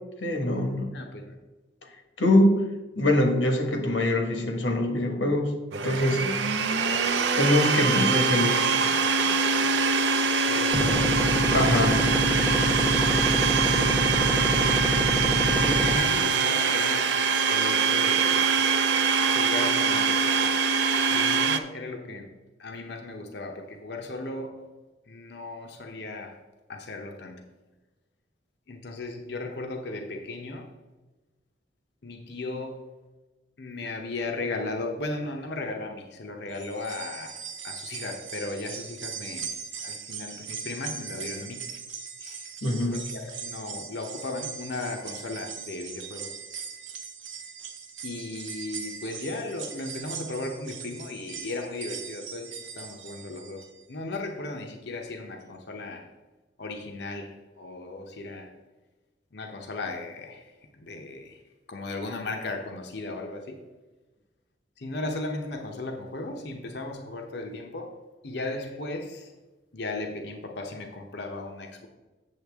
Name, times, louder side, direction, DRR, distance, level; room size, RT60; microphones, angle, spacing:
voice 1, 0.2-0.9 2.2-5.5 5.8-6.2 7.4-8.6 11.5-12.0 42.6-43.0, left 1 dB, 85° left, 4 dB, 1.5 m, -23 dB
voice 2, 0.9-1.4 10.5-11.2 13.1-13.8 15.4-17.1 17.5-18.7 19.2-20.3 21.1-22.3 22.6-24.7 25.1-26.4 26.7-27.4 28.7-30.7 32.0-32.8 33.6-41.7 42.2-42.5 42.9-46.3 48.0-56.1 56.6-58.5 59.3-61.4 61.7-63.6 64.8-67.9 68.2-69.3 69.7-71.9, left 2 dB, 60° left, 3 dB, 0.8 m, -36 dB
Domestic sounds home sounds, 5.7-21.6, right 5 dB, 70° right, 0.6 m, -23 dB
sound 1, 10.7-16.0, right 1 dB, 5° right, 0.5 m, -27 dB
sound 2, 36.5-53.8 54.2-54.3 55.4-55.5, right 7 dB, 85° right, 0.9 m, -40 dB
8.4 x 7.1 x 3.5 m, 1.2 s
head